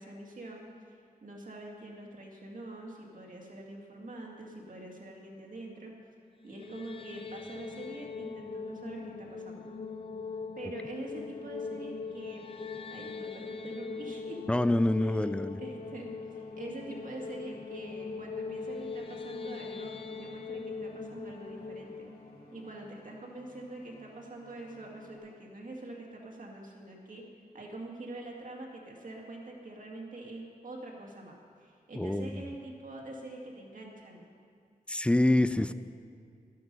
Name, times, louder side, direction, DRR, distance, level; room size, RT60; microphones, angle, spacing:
voice 1, 0.0-5.9 6.4-9.7 10.6-12.5 12.9-14.4 15.0-15.2 15.6-22.1 22.5-27.2 27.5-34.3 35.7-35.8, right 2 dB, 60° right, -1 dB, 2.1 m, -45 dB
sound 1, 6.4-23.5, left 4 dB, 35° left, 0.7 m, -41 dB
sound 2, 12.4-25.2, left 1 dB, 85° left, 3.1 m, -59 dB
voice 2, 14.5-15.6 32.0-32.4 34.9-35.7, left 1 dB, 5° left, 14 dB, 0.3 m, -26 dB
12.5 x 12.5 x 5.4 m, 2.3 s
wide cardioid pair, 125°, 16 cm